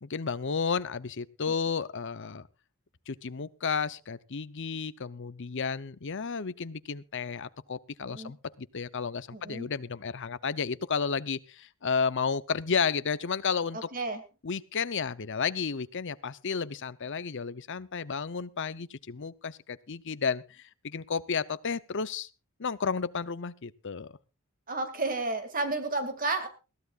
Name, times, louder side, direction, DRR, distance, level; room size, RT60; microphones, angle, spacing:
voice 1, 0.0-2.5 3.1-13.9 14.4-22.3 22.6-24.1, left 5 dB, 55° left, 15 dB, 0.7 m, -32 dB
voice 2, 9.3-9.7 13.9-14.2 24.7-26.5, right 3 dB, 40° right, 8 dB, 2.3 m, -31 dB
21.5 x 14.5 x 2.5 m, 0.31 s
head